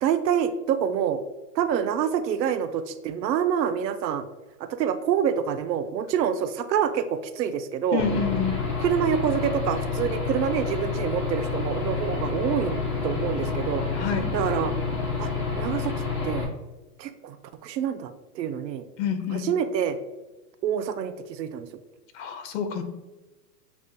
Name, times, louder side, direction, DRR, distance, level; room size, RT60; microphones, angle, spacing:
voice 1, 0.0-1.2 1.6-4.2 4.6-8.1 8.8-13.8 14.3-14.7 15.2-15.9 16.2-16.5 17.0-17.4 17.6-18.8 19.3-20.0 20.6-21.7, right 8 dB, 90° right, 10 dB, 0.5 m, -26 dB
voice 2, 7.9-8.6 13.9-14.3 19.0-19.5 22.1-22.8, left 6 dB, 45° left, 8 dB, 0.7 m, -28 dB
Aircraft / Engine, 8.0-16.4, left 4 dB, 20° left, 0.3 m, -29 dB
6.9 x 2.4 x 2.6 m, 1.2 s
hypercardioid pair, 125°, 49 cm